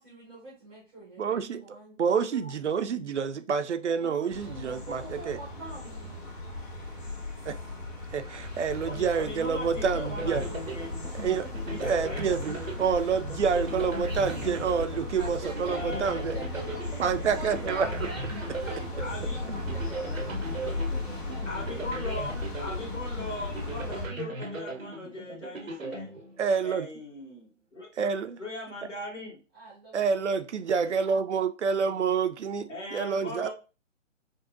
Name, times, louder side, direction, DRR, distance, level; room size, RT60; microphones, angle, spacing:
voice 1, 0.0-2.1 3.9-6.2 15.1-21.8 29.5-30.4, right 2 dB, ahead, -11 dB, 0.5 m, -46 dB
voice 2, 1.2-1.6 2.0-5.4 7.5-7.6 8.1-10.4 11.1-11.5 11.7-16.4 17.0-17.9 26.4-26.9 28.0-28.4 29.9-33.5, right 6 dB, 65° right, 9 dB, 0.5 m, -28 dB
sound 1, 4.3-24.1, left 2 dB, 40° left, 1.5 m, -36 dB
voice 3, 8.8-10.9 11.7-12.3 15.7-16.2 17.7-17.9 19.0-19.4 21.5-26.2 26.6-27.9 28.4-29.4 32.7-33.5, left 2 dB, 65° left, -2 dB, 1.8 m, -39 dB
sound 2, 10.2-26.7, right 2 dB, 85° right, 0.8 m, -39 dB
5.1 x 2.1 x 2.5 m, 0.33 s
figure-of-eight pair, 130°, 38 cm